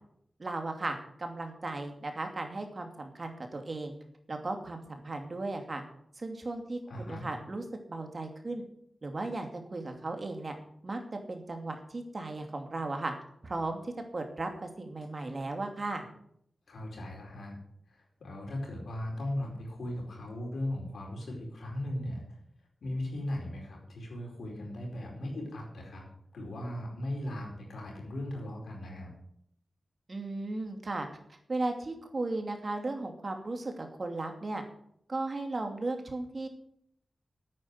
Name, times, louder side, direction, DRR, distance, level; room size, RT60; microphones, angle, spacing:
voice 1, 0.4-3.9 4.3-5.8 6.2-8.6 9.0-10.5 10.8-11.0 11.3-13.1 13.4-16.1 30.1-34.6 35.1-36.5, right 2 dB, 50° right, 4 dB, 2.6 m, -36 dB
voice 2, 6.9-7.3 16.7-17.6 17.9-22.4 22.8-26.1 26.3-29.1, left 1 dB, 85° left, -1 dB, 4.6 m, -38 dB
9.3 x 9.0 x 8.3 m, 0.70 s
cardioid pair, 40°, 0 cm